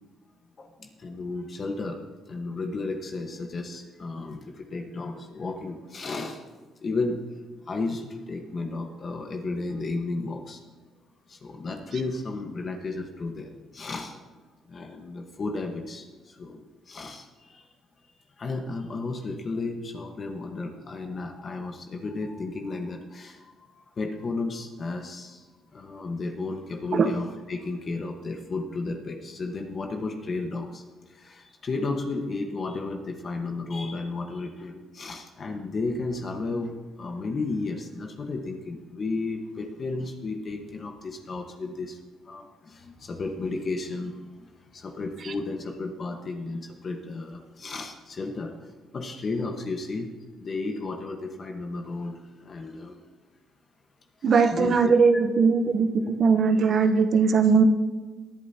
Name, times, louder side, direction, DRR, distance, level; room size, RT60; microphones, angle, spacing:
voice 1, 0.6-2.0 2.3-6.4 6.8-7.2 7.7-10.6 11.3-14.2 14.7-17.6 18.4-23.4 24.0-25.4 25.7-30.8 31.1-42.0 42.3-44.2 44.7-48.5 48.9-50.1 50.4-53.0 54.2-54.9 55.2-55.3, left 3 dB, 40° left, 3 dB, 1.3 m, -33 dB
voice 2, 54.2-57.6, right 5 dB, 50° right, 7 dB, 1.0 m, -20 dB
19.5 x 11.0 x 2.9 m, 1.3 s
cardioid pair, 85°, 0 cm